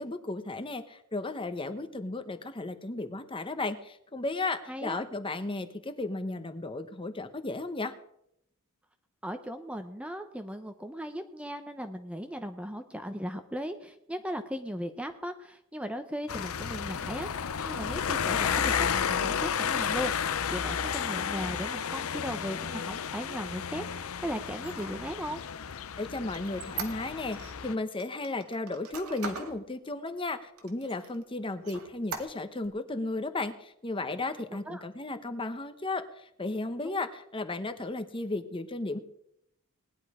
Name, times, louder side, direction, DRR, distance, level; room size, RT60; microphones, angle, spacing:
voice 1, 0.0-7.9 26.0-39.0, left 2 dB, 25° left, 9 dB, 1.0 m, -34 dB
voice 2, 4.7-5.0 9.2-25.4 34.7-34.8 36.8-37.0, equal, 5° right, 7 dB, 0.7 m, -37 dB
sound 1, 16.3-27.8, left 7 dB, 70° left, 0.6 m, -32 dB
Squeak, 24.5-27.5 28.0-29.6 30.1-30.2 30.6-31.2 31.6-32.7, right 5 dB, 85° right, 2.1 m, -41 dB
19.0 x 10.5 x 4.9 m, 0.76 s
head